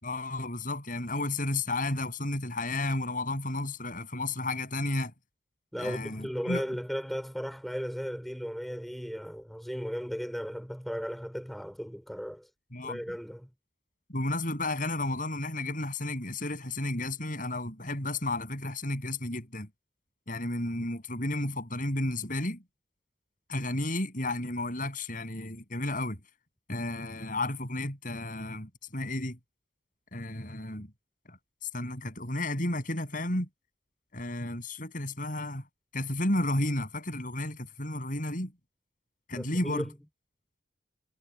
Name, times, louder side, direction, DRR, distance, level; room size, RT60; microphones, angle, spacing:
voice 1, 0.0-5.1 5.8-6.6 12.7-13.0 14.1-19.7 20.3-22.6 23.5-26.2 26.7-29.4 30.1-30.9 31.3-31.4 31.7-33.5 34.1-35.6 35.9-38.5 39.3-39.9, left 2 dB, 45° left, 7.9 m, -32 dB
voice 2, 5.7-12.5 12.8-13.5 39.3-39.9, equal, ahead, 5.0 m, -36 dB
head